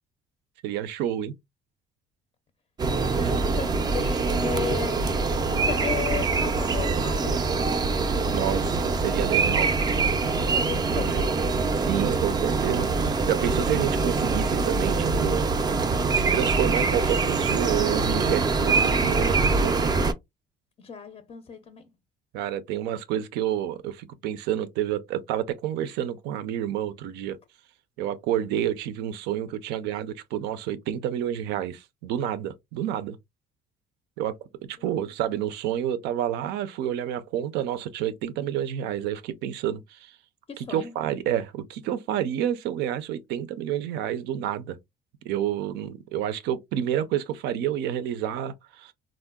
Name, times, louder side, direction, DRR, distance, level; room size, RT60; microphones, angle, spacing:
voice 1, 0.6-1.3 3.2-3.4 8.3-9.7 10.9-11.3 11.8-15.5 16.1-19.7 22.3-27.4 28.0-33.2 34.2-34.4 34.8-40.2 40.6-44.8 45.2-48.9, right 10 dB, 90° right, 0.5 m, -29 dB
sound 1, 2.8-20.1, right 4 dB, 25° right, 0.3 m, -24 dB
voice 2, 3.1-5.0 5.5-7.4 10.5-11.3 20.8-21.9 40.5-40.9, left 7 dB, 30° left, 0.4 m, -35 dB
3.6 x 2.1 x 2.2 m
cardioid pair, 110°, 17 cm